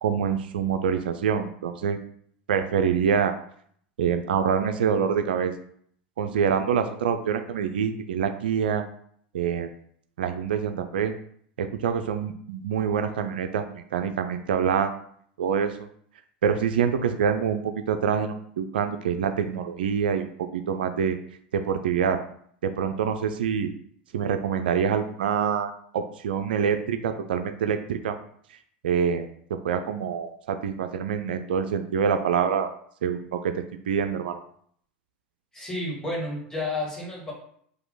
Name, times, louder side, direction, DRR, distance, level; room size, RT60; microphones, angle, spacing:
voice 1, 0.0-2.0 2.5-3.3 4.0-5.5 6.2-8.8 9.3-9.7 10.2-11.1 11.6-15.0 15.4-15.9 16.4-20.3 20.5-21.2 21.5-22.2 22.6-23.7 24.1-28.2 28.8-32.7 33.0-34.4, right 7 dB, 85° right, 7 dB, 0.4 m, -26 dB
voice 2, 35.5-37.3, left 2 dB, 10° left, -3 dB, 2.0 m, -31 dB
4.8 x 2.7 x 3.9 m, 0.63 s
hypercardioid pair, 100°, 5 cm